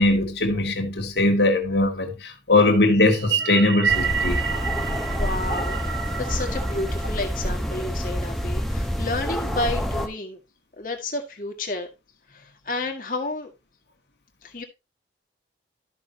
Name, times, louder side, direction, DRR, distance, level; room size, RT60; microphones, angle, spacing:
voice 1, 0.0-4.4, left 2 dB, 70° left, 2.0 m, -20 dB
sound 1, 3.1-7.7, right 7 dB, 75° right, 1.1 m, -29 dB
sound 2, 3.9-10.1, equal, ahead, 0.9 m, -27 dB
voice 2, 5.1-10.4 10.8-11.9 12.3-13.5 14.4-14.6, left 2 dB, 50° left, 1.9 m, -31 dB
13.0 x 6.2 x 2.9 m
head